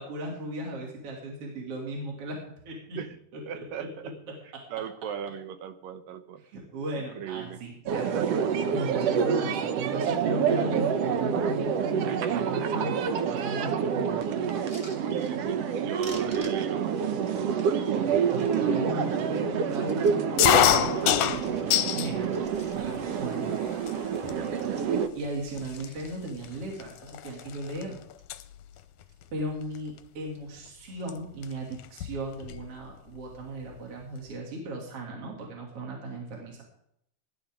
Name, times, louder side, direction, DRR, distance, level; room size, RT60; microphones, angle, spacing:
voice 1, 0.0-2.4 2.7-3.0 3.3-3.9 4.5-4.7 6.5-8.3 8.7-14.4 17.9-22.4 22.7-23.5 23.8-24.7 25.1-28.0 29.3-36.6, right 1 dB, 45° right, -1 dB, 3.6 m, -37 dB
voice 2, 3.5-4.1 4.4-6.4 7.2-7.6 15.2-17.2, right 8 dB, 85° right, 9 dB, 2.8 m, -38 dB
sound 1, 7.9-25.1, right 7 dB, 65° right, 1.7 m, -27 dB
sound 2, 14.6-15.7 16.0-18.6 19.1-20.2 20.6-23.1 23.4-23.5 23.8-24.1 24.3-26.3 26.7-27.4 27.9-28.5 28.7-29.3 30.1-30.4, right 1 dB, 20° right, 2.6 m, -51 dB
sound 3, 20.4-22.1 22.5-23.2 23.9-24.0 24.2-24.6 25.2-25.3 25.6-27.8 28.1-28.4 29.7-30.0 31.1-31.2 31.4-31.5 31.8-32.7, left 11 dB, 75° left, 1.9 m, -25 dB
19.0 x 11.5 x 3.8 m, 0.73 s
omnidirectional pair, 3.8 m